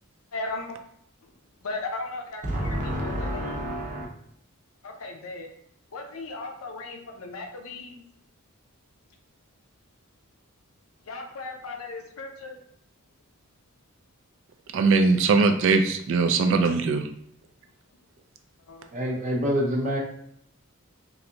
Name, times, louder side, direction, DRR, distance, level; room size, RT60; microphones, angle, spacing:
voice 1, 0.3-0.8 1.6-3.6 4.8-5.5 5.9-8.0 11.0-12.6 18.7-18.9, left 3 dB, 80° left, 3 dB, 0.6 m, -36 dB
voice 2, 2.4-4.1 18.9-20.0, equal, 35° right, -2 dB, 0.7 m, -27 dB
voice 3, 14.7-17.0, right 4 dB, 60° right, 6 dB, 0.3 m, -21 dB
3.2 x 2.6 x 2.8 m, 0.71 s
head